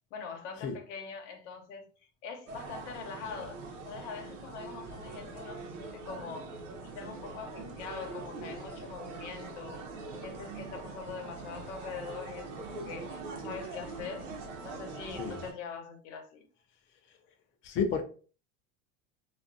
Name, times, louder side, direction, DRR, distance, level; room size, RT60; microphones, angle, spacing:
voice 1, 0.1-3.6 3.8-6.5 6.9-9.9 10.2-14.3 14.6-16.4, left 5 dB, 85° left, 0.9 m, -43 dB
sound 1, 2.5-15.5, right 3 dB, 85° right, 0.9 m, -43 dB
voice 2, 17.6-18.0, left 5 dB, 35° left, 0.5 m, -30 dB
2.5 x 2.4 x 2.5 m
supercardioid pair, 115°, 35 cm